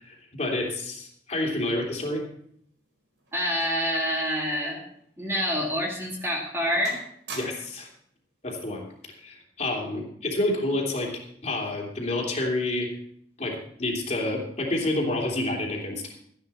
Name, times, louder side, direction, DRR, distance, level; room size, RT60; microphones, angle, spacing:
voice 1, 0.0-2.3 7.3-7.9 8.4-8.9 9.2-13.0 13.4-16.1, left 1 dB, 40° left, -1 dB, 3.1 m, -29 dB
sound 1, 2.5-4.7 4.9-5.1 5.7-5.9 6.3-6.6 6.8-7.9 8.9-9.2, right 3 dB, 80° right, 4.7 m, -44 dB
voice 2, 3.3-4.8 5.2-7.0, equal, 15° right, -2 dB, 2.4 m, -27 dB
14.5 x 10.5 x 4.3 m, 0.66 s
head